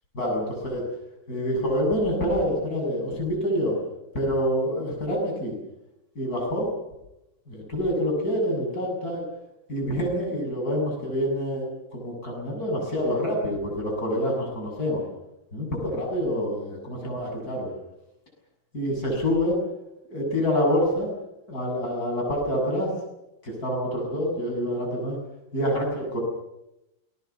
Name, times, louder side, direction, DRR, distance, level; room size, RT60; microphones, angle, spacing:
voice 1, 0.1-0.8 1.3-3.8 4.1-5.5 6.2-6.7 7.5-9.2 9.7-15.0 15.5-17.7 18.7-19.6 20.1-21.1 21.5-22.9 23.4-25.2 25.5-26.2, equal, 50° left, 0 dB, 8.2 m, -26 dB
28.5 x 21.5 x 7.2 m, 0.90 s
omnidirectional pair, 2.1 m